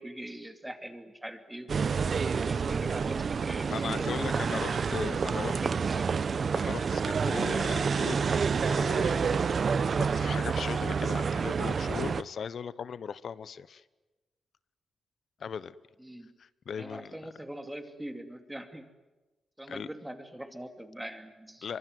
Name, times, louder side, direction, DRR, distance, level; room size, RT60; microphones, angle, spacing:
voice 1, 0.0-1.7 2.3-6.2 16.0-16.4 16.8-18.9 19.6-21.7, right 1 dB, 10° right, 7 dB, 2.6 m, -42 dB
sound 1, 1.7-12.2, right 5 dB, 55° right, 0.8 m, -28 dB
voice 2, 3.7-5.6 6.6-13.8 15.4-15.7 16.4-17.3 19.7-19.9 21.6-21.8, left 7 dB, 65° left, 17 dB, 0.9 m, -38 dB
24.0 x 24.0 x 9.4 m, 1.1 s
cardioid pair, 80°, 0 cm